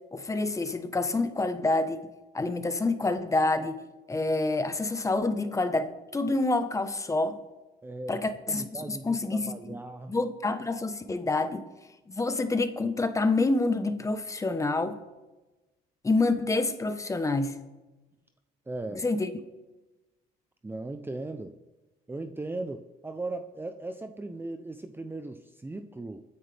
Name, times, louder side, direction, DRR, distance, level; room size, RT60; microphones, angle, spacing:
voice 1, 0.1-2.0 2.3-3.8 4.1-7.4 8.1-9.8 10.1-11.6 12.2-15.0 16.0-17.6 19.0-19.3, left 2 dB, 20° left, 9 dB, 1.2 m, -27 dB
voice 2, 7.8-10.2 18.7-19.1 20.6-21.6 22.1-26.2, right 2 dB, 10° right, 8 dB, 0.7 m, -38 dB
23.0 x 9.8 x 3.5 m, 1.1 s
cardioid pair, 110°, 17 cm